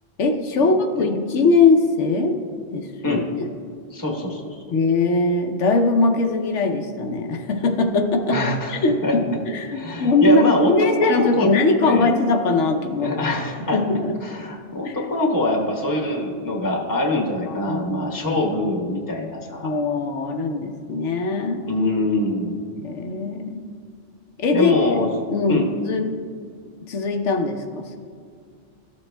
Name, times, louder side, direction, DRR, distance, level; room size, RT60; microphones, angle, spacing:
voice 1, 0.2-2.4 2.7-3.2 4.7-8.4 8.7-13.1 13.6-14.1 14.8-15.0 17.5-18.4 19.6-21.7 22.8-23.6 24.4-24.7 25.3-25.6 25.8-26.1 26.9-28.0, left 3 dB, 80° left, 4 dB, 1.1 m, -21 dB
voice 2, 3.9-4.6 8.3-9.2 9.7-11.5 11.8-12.1 13.0-13.8 14.2-19.7 21.7-22.6 24.5-25.1 25.5-25.7, left 2 dB, 20° left, -1 dB, 0.9 m, -24 dB
13.5 x 7.3 x 2.2 m, 2.2 s
omnidirectional pair, 1.2 m